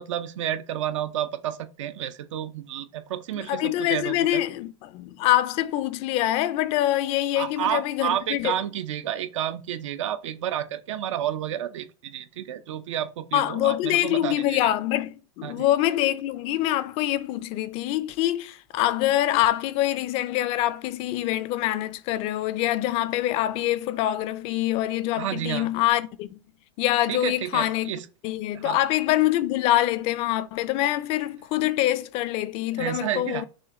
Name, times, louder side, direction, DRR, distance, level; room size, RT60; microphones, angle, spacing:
voice 1, 0.0-4.4 7.4-14.7 15.4-15.7 25.2-25.7 27.1-28.1 28.5-28.8 32.8-33.4, right 11 dB, 85° right, 0.6 m, -30 dB
voice 2, 3.5-8.5 13.3-26.4 26.8-27.9 28.2-33.4, left 14 dB, 40° left, 0.4 m, -25 dB
6.2 x 2.2 x 3.7 m
supercardioid pair, 140°, 16 cm